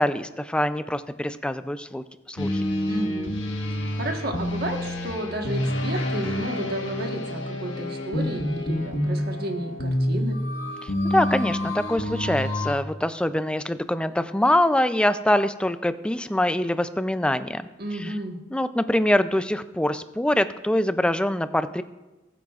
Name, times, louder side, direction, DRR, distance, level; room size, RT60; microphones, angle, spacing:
voice 1, 0.0-2.6 10.8-17.6 18.0-18.1 18.5-21.8, left 1 dB, 5° left, 12 dB, 0.4 m, -24 dB
sound 1, 2.4-12.7, left 1 dB, 80° left, 1.4 m, -28 dB
voice 2, 2.8-3.3 3.7-10.4 17.8-18.4, right 1 dB, 55° right, 2 dB, 1.4 m, -32 dB
20.0 x 9.1 x 2.4 m, 1.1 s
head